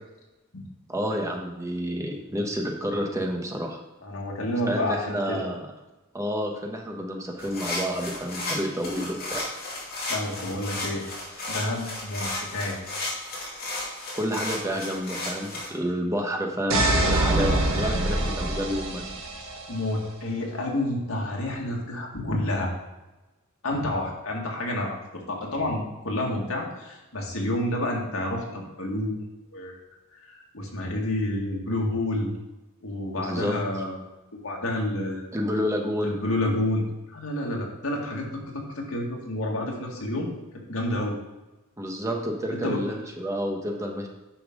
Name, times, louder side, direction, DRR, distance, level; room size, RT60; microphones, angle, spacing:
voice 1, 0.9-3.8 4.7-5.6 6.1-9.5 14.2-19.1 33.2-33.5 35.3-36.2 41.8-44.1, equal, 15° right, 1 dB, 1.2 m, -29 dB
voice 2, 4.0-5.5 10.1-11.1 11.5-12.8 19.7-22.7 23.6-25.0 25.3-29.2 29.5-29.8 30.2-32.3 32.8-34.0 34.3-35.3 36.0-36.8 37.1-40.3 40.7-41.2 42.5-42.8, left 1 dB, 80° left, -1 dB, 2.0 m, -29 dB
sound 1, 7.4-15.7, left 2 dB, 45° left, 2.6 m, -34 dB
sound 2, 16.7-19.6, right 1 dB, 75° right, 1.6 m, -24 dB
9.8 x 5.9 x 3.8 m, 1.1 s
head